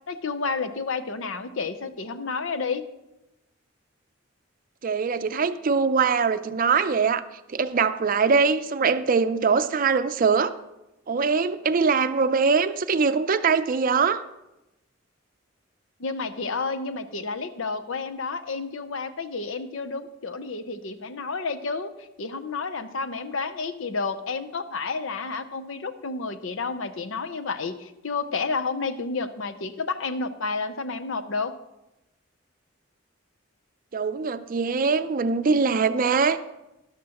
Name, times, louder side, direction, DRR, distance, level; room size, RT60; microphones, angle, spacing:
voice 1, 0.1-2.9 16.0-31.5, left 4 dB, 80° left, 10 dB, 0.7 m, -30 dB
voice 2, 4.8-7.2 7.5-10.5 11.1-14.2 33.9-36.4, right 5 dB, 45° right, 12 dB, 0.5 m, -22 dB
12.5 x 11.5 x 3.0 m, 0.94 s
head